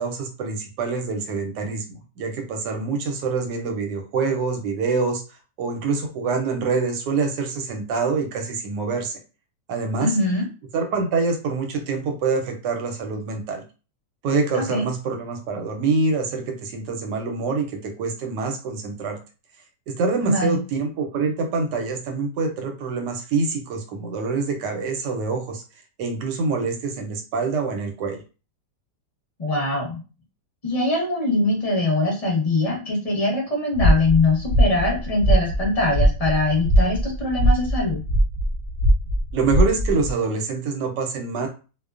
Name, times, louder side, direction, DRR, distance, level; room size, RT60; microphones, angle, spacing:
voice 1, 0.0-5.2 5.6-9.2 9.7-10.1 10.7-13.6 14.2-19.2 19.9-25.6 26.0-28.2 39.3-41.5, right 4 dB, 90° right, 4 dB, 1.2 m, -25 dB
voice 2, 10.0-10.4 14.7-14.8 20.2-20.6 29.4-30.0 30.6-38.0, left 2 dB, 30° left, -3 dB, 0.8 m, -22 dB
sound 1, 33.7-40.1, equal, 55° right, 0.8 m, -21 dB
2.6 x 2.1 x 2.3 m, 0.33 s
omnidirectional pair, 1.8 m